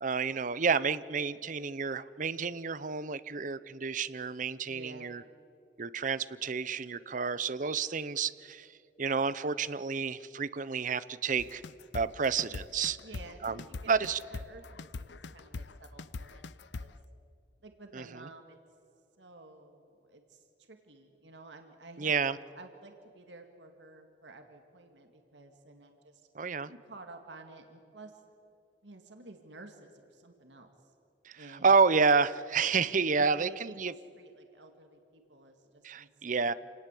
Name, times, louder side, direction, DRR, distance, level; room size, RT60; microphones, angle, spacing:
voice 1, 0.0-5.2 5.8-8.7 9.0-11.6 11.9-13.0 13.4-14.2 17.9-18.0 22.0-22.4 26.3-26.7 31.3-31.4 31.6-33.5 33.8-33.9 35.8-36.5, right 5 dB, 45° right, 16 dB, 0.7 m, -29 dB
voice 2, 4.7-5.2 13.0-16.9 17.6-18.6 19.2-22.1 22.5-26.2 26.7-28.2 28.8-30.7 31.4-31.8 33.2-36.5, right 2 dB, 85° right, 5 dB, 2.1 m, -52 dB
sound 1, 11.4-17.0, left 3 dB, 80° left, 0.7 m, -42 dB
28.0 x 18.5 x 8.4 m, 2.6 s
head